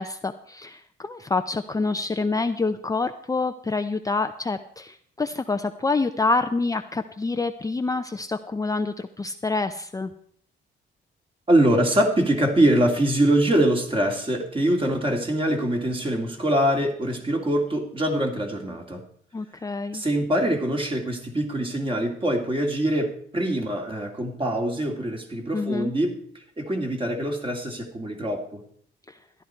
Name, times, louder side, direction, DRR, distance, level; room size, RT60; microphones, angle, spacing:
voice 1, 0.0-10.1 19.3-20.0 25.5-25.9 29.1-29.2, left 3 dB, 15° left, 8 dB, 0.6 m, -27 dB
voice 2, 11.5-19.0 19.9-26.2 26.6-28.6, right 1 dB, 25° right, 2 dB, 2.6 m, -23 dB
13.5 x 11.0 x 4.6 m, 0.62 s
cardioid pair, 90°, 20 cm